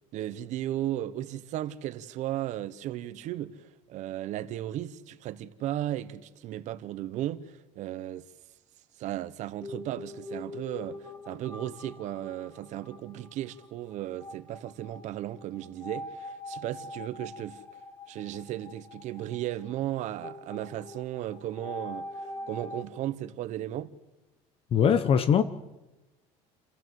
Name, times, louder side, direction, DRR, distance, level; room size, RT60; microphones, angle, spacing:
voice 1, 0.1-3.6 3.9-8.3 9.0-17.6 18.1-23.9, right 13 dB, 60° right, 1.2 m, -35 dB
sound 1, 9.6-22.9, left 2 dB, 25° left, 2.0 m, -43 dB
voice 2, 24.7-25.4, left 7 dB, 40° left, 1.0 m, -21 dB
29.5 x 15.0 x 7.9 m
cardioid pair, 130°, 14 cm